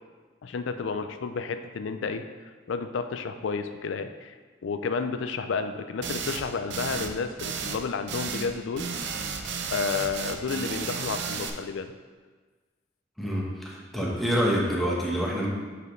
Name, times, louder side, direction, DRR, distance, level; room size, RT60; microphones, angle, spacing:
voice 1, 0.4-2.2 2.7-4.3 4.6-8.8 9.7-11.9, left 5 dB, 70° left, 9 dB, 0.4 m, -31 dB
sound 1, 6.0-6.4 6.7-7.1 7.4-7.8 8.1-8.5 8.8-11.5, right 5 dB, 65° right, 0.5 m, -33 dB
voice 2, 13.2-15.5, equal, ahead, -4 dB, 1.1 m, -27 dB
7.4 x 4.9 x 3.2 m, 1.4 s
head